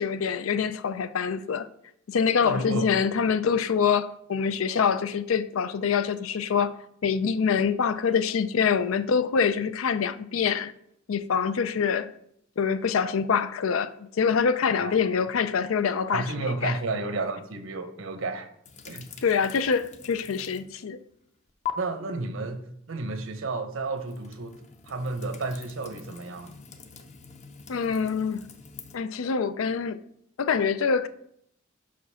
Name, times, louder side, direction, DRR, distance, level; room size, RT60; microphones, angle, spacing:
voice 1, 0.0-1.7 2.1-6.8 7.0-10.7 11.1-12.1 12.6-16.3 16.6-16.7 19.2-21.0 27.7-28.5 28.9-30.0 30.4-31.1, left 6 dB, 80° left, 0.5 m, -25 dB
voice 2, 2.4-2.9 14.8-14.9 16.1-18.5 18.8-19.1 21.8-24.6 24.9-26.5, right 3 dB, 70° right, 0.9 m, -32 dB
sound 1, 18.6-20.8 21.1-21.7 23.8-29.0, left 9 dB, 35° left, 0.7 m, -43 dB
5.9 x 5.1 x 5.5 m
head